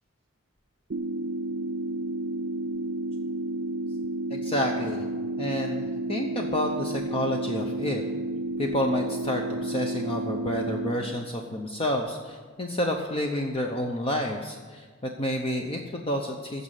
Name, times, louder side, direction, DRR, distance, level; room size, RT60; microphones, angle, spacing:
sound 1, 0.9-10.9, right 1 dB, 50° right, 0.6 m, -31 dB
voice 1, 4.3-5.1 5.4-8.0 8.6-16.6, left 1 dB, 25° left, 2 dB, 0.8 m, -29 dB
15.0 x 5.3 x 9.1 m, 1.4 s
head